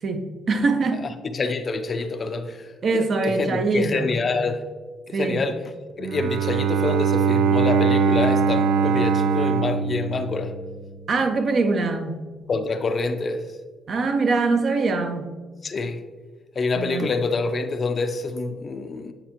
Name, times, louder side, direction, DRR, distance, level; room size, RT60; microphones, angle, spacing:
voice 1, 0.0-1.0 2.8-4.2 5.1-5.5 11.1-12.2 13.9-15.3 16.8-17.1, right 3 dB, 50° right, 7 dB, 0.7 m, -23 dB
voice 2, 1.3-2.7 2.9-4.6 5.1-5.6 6.0-10.5 12.5-13.5 15.6-16.0 16.6-19.1, left 3 dB, 40° left, 8 dB, 0.6 m, -26 dB
Bowed string instrument, 6.0-11.0, right 6 dB, 85° right, 0.3 m, -22 dB
9.0 x 4.3 x 3.0 m, 1.4 s
cardioid pair, 90°, 0 cm